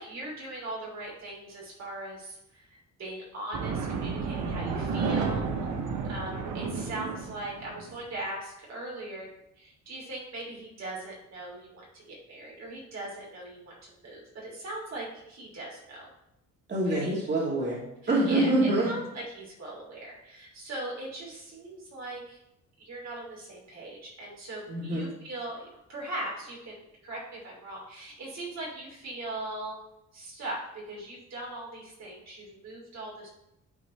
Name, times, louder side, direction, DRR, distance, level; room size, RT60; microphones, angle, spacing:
voice 1, 0.0-5.7 6.1-9.3 9.6-16.1 16.9-17.1 18.3-18.4 18.9-22.4 22.8-29.8 30.1-33.3, right 2 dB, 60° right, -4 dB, 3.1 m, -40 dB
sound 1, 3.5-8.0, right 5 dB, 80° right, 1.1 m, -32 dB
voice 2, 4.4-4.8 16.7-17.8 18.1-18.9 24.7-25.1, right 1 dB, 35° right, -6 dB, 2.8 m, -26 dB
12.0 x 4.0 x 3.3 m, 0.81 s
cardioid pair, 90°, 30 cm